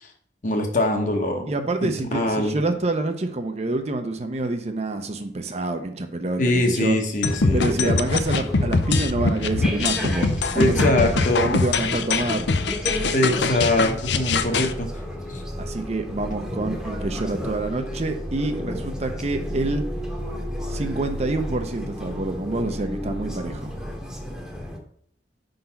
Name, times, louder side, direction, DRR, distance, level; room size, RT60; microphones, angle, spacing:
voice 1, 0.4-1.5 1.8-2.6 6.4-8.0 10.5-11.5 13.1-14.9 15.3-15.4, left 1 dB, 45° left, 3 dB, 1.1 m, -23 dB
voice 2, 1.4-7.0 7.5-12.5 15.6-19.9 20.7-23.8, right 2 dB, 35° right, 6 dB, 0.6 m, -27 dB
sound 1, 7.2-14.7, left 4 dB, 75° left, 0.5 m, -23 dB
sound 2, 7.2-24.8, equal, 5° right, 0.9 m, -32 dB
5.3 x 3.9 x 5.7 m, 0.66 s
head